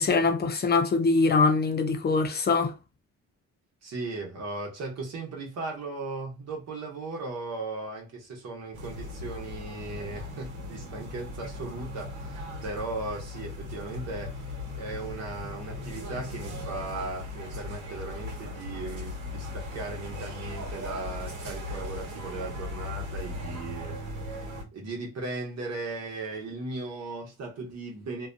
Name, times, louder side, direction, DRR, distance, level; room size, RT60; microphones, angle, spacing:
voice 1, 0.0-2.8, left 4 dB, 35° left, 0.6 m, -23 dB
voice 2, 3.8-14.4 14.7-28.3, right 3 dB, 60° right, 1.0 m, -37 dB
sound 1, 8.7-24.6, left 2 dB, 80° right, 1.2 m, -38 dB
2.5 x 2.3 x 2.5 m
cardioid pair, 90°, 30 cm